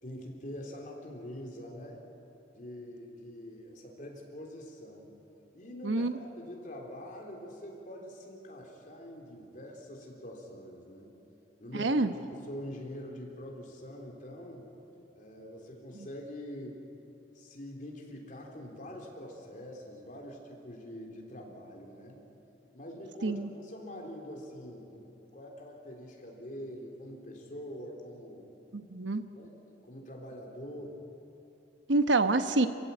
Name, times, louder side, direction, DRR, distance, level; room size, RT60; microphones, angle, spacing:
voice 1, 0.0-2.1 2.5-5.1 5.5-11.1 11.6-12.0 12.3-14.7 15.2-16.8 17.3-22.2 22.7-28.5 29.3-29.5 29.9-31.0, equal, 45° left, 0 dB, 3.6 m, -44 dB
voice 2, 11.7-12.1 23.2-23.5 28.7-29.2 31.9-32.7, right 2 dB, 90° right, 9 dB, 1.1 m, -26 dB
27.5 x 15.5 x 8.4 m, 2.9 s
head